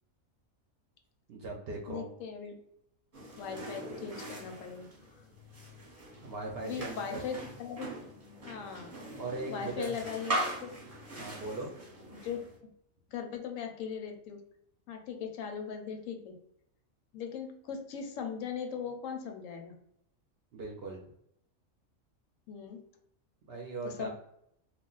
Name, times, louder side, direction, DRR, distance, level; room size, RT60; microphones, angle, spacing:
voice 1, 1.3-2.1 6.2-7.3 9.2-10.0 11.2-11.7 20.5-21.0 23.4-24.1, right 2 dB, 60° right, 0 dB, 0.7 m, -39 dB
voice 2, 1.9-2.5 3.4-4.9 6.6-7.9 8.4-8.9 9.5-10.7 12.1-12.4 13.1-14.4 14.9-16.3 17.1-19.7 22.5-22.8 23.8-24.1, left 7 dB, 75° left, 5 dB, 0.9 m, -39 dB
sound 1, 3.1-12.6, right 1 dB, 30° right, 0.9 m, -41 dB
2.4 x 2.1 x 3.7 m, 0.74 s
omnidirectional pair, 1.4 m